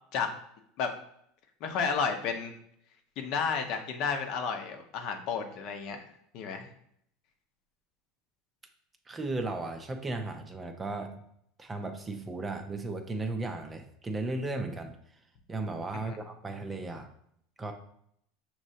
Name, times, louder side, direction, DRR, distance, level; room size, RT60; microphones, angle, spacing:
voice 1, 1.6-2.5 3.2-6.0 6.3-6.7 16.0-16.2, left 5 dB, 60° left, 4 dB, 0.7 m, -32 dB
voice 2, 9.1-11.2 11.6-15.0 15.5-17.1 17.6-17.7, right 2 dB, 20° right, 6 dB, 0.5 m, -35 dB
6.3 x 3.0 x 2.7 m, 0.70 s
supercardioid pair, 120°, 0 cm